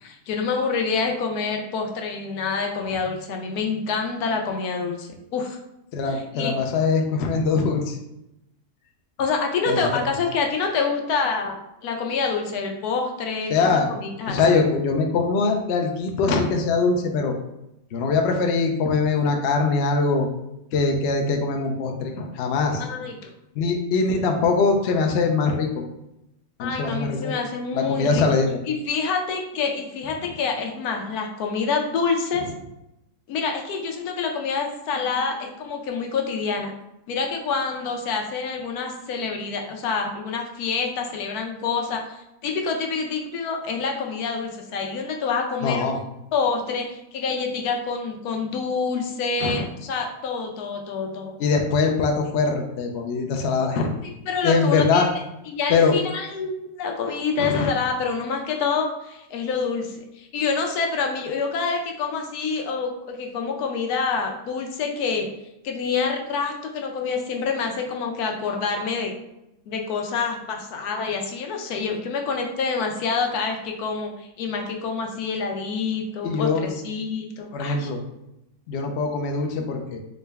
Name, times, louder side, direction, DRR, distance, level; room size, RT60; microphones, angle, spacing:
voice 1, 0.0-5.6 6.1-6.5 9.2-14.4 22.8-23.3 26.6-28.2 28.7-32.5 33.3-36.7 37.1-45.9 46.3-51.3 54.0-55.1 55.5-65.3 65.6-69.1 69.7-77.9, left 5 dB, 80° left, 3 dB, 1.1 m, -27 dB
voice 2, 5.9-8.0 9.7-9.8 13.5-13.9 14.3-17.3 17.9-20.3 20.7-22.8 23.6-25.8 26.6-27.3 27.7-28.6 45.6-46.0 49.4-49.7 51.4-53.9 54.4-55.1 55.7-55.9 57.4-57.7 76.2-76.7 77.5-78.0 78.7-80.0, left 4 dB, 65° left, 2 dB, 0.7 m, -22 dB
3.8 x 2.2 x 3.3 m, 0.87 s
omnidirectional pair, 1.6 m